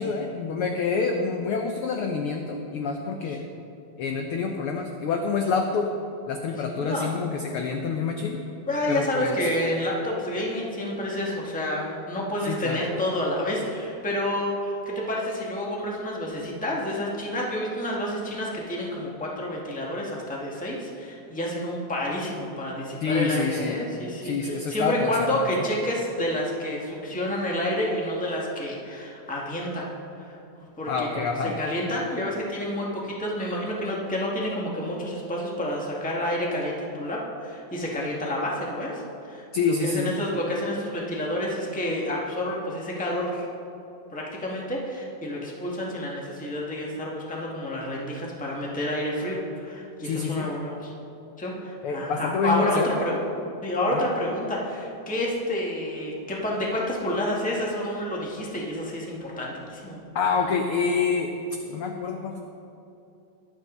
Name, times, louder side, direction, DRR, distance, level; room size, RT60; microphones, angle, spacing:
voice 1, 0.0-3.4 4.0-5.9 6.3-8.4 8.9-9.5 12.5-12.8 23.0-23.8 24.2-25.5 30.9-31.6 39.5-40.1 50.0-50.5 51.8-53.2 53.9-54.1 60.1-61.4 61.7-62.4, left 5 dB, 75° left, 4 dB, 1.3 m, -27 dB
voice 2, 8.5-29.9 30.2-30.3 30.8-31.3 31.6-43.5 44.1-50.9 51.4-53.1 53.6-60.0, left 1 dB, 5° left, -3 dB, 1.2 m, -29 dB
21.5 x 8.4 x 4.0 m, 2.7 s
omnidirectional pair, 3.3 m